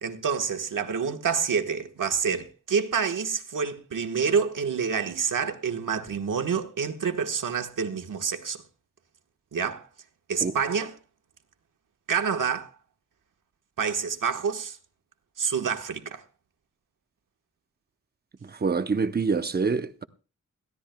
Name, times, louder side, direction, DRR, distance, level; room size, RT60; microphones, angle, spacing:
voice 1, 0.0-8.6 9.5-9.9 10.3-11.0 12.1-12.7 13.8-14.8 15.4-16.2, right 6 dB, 80° right, 1.4 m, -27 dB
voice 2, 18.6-20.0, right 4 dB, 30° right, 0.7 m, -25 dB
21.0 x 15.5 x 2.2 m
wide cardioid pair, 170°, 31 cm